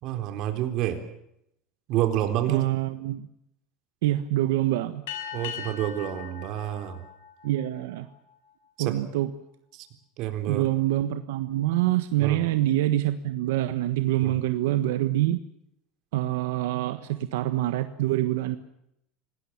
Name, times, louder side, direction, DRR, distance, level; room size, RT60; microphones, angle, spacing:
voice 1, 0.0-1.0 1.9-2.7 5.3-7.0 8.8-9.0 9.7-9.9 10.2-10.6 12.2-12.4 14.2-14.3, right 12 dB, 50° right, 6 dB, 3.8 m, -28 dB
voice 2, 2.5-3.3 4.0-5.0 7.4-8.1 8.8-9.3 10.5-15.4 16.1-18.6, right 14 dB, 90° right, 10 dB, 1.3 m, -25 dB
sound 1, 5.1-8.0, left 8 dB, 85° left, 6.4 m, -39 dB
26.0 x 19.5 x 7.4 m, 0.78 s
supercardioid pair, 155°, 0 cm